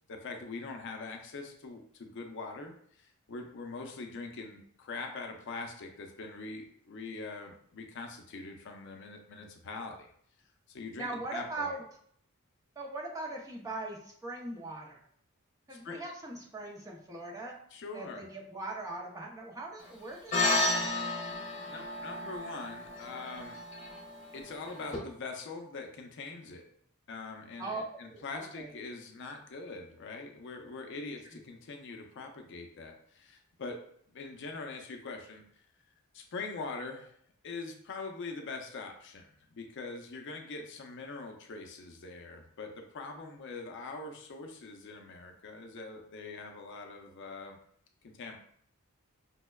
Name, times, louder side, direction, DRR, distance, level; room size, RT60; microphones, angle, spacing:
voice 1, 0.1-10.1 10.7-11.8 15.7-16.0 17.7-18.3 21.7-23.6 24.3-26.6 27.1-33.8 34.1-35.4 36.1-37.1 37.4-47.6 48.0-48.4, left 3 dB, 55° left, 4 dB, 0.5 m, -43 dB
voice 2, 11.0-11.8 12.8-15.0 15.7-17.6 17.9-21.0 27.6-27.8 28.1-28.7 31.3-31.4, right 2 dB, 15° right, -2 dB, 0.5 m, -40 dB
sound 1, 20.3-25.0, left 2 dB, 35° left, 0.8 m, -33 dB
5.3 x 2.1 x 2.2 m, 0.63 s
head